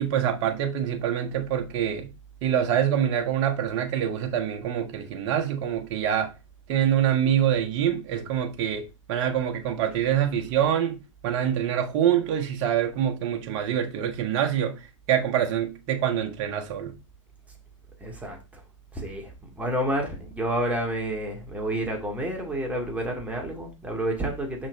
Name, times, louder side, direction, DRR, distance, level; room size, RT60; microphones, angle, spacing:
voice 1, 0.0-2.1 2.4-6.3 6.7-14.8 15.1-16.9, right 9 dB, 45° right, 1.5 m, -25 dB
voice 2, 18.0-18.6 18.9-24.7, right 1 dB, 10° right, 2.3 m, -30 dB
6.3 x 5.8 x 4.2 m
hypercardioid pair, 115°, 17 cm